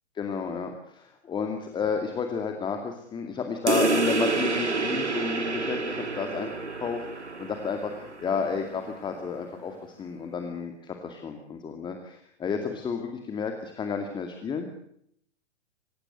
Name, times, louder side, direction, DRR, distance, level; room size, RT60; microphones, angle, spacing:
voice 1, 0.2-14.8, left 5 dB, 15° left, 5 dB, 2.4 m, -32 dB
sound 1, 3.7-8.7, right 3 dB, 80° right, 2.5 m, -28 dB
25.5 x 16.5 x 8.0 m, 0.70 s
figure-of-eight pair, 115°, 34 cm